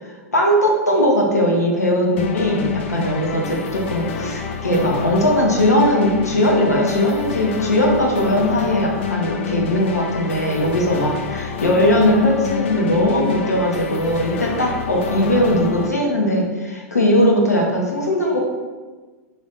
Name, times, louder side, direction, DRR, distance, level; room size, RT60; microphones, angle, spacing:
voice 1, 0.3-18.4, left 1 dB, 80° left, -1 dB, 0.7 m, -19 dB
Searching MF, 2.2-15.9, left 6 dB, 50° left, 0.4 m, -28 dB
3.0 x 2.7 x 3.2 m, 1.3 s
figure-of-eight pair, 100°, 8 cm